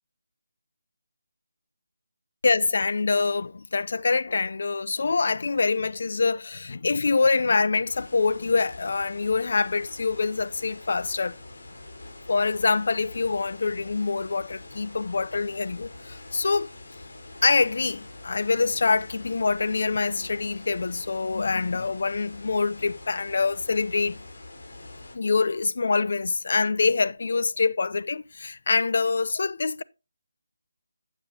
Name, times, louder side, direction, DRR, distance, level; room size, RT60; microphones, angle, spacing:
voice 1, 2.4-11.4 12.3-16.7 17.4-24.2 25.1-29.8, left 4 dB, 60° left, 0.5 m, -25 dB
sound 1, 7.9-25.2, left 2 dB, 75° left, 4.0 m, -45 dB
11.5 x 8.0 x 2.8 m
figure-of-eight pair, 165°, 0 cm